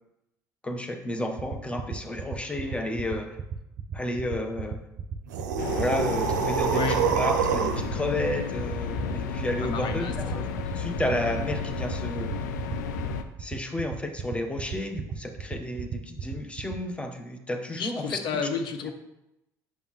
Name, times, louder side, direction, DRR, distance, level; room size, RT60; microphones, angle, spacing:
voice 1, 0.6-3.4 3.9-4.8 5.6-12.3 13.4-18.0, left 1 dB, 10° left, 5 dB, 0.9 m, -32 dB
sound 1, 1.4-16.8, right 9 dB, 45° right, 0.7 m, -34 dB
sound 2, 5.3-7.9, right 7 dB, 85° right, 0.5 m, -26 dB
sound 3, 5.6-13.2, left 6 dB, 85° left, 0.4 m, -32 dB
voice 2, 6.7-7.0 9.6-10.1 17.7-18.9, left 5 dB, 55° left, 7 dB, 0.9 m, -31 dB
7.2 x 5.3 x 3.0 m, 0.90 s
hypercardioid pair, 65°, 9 cm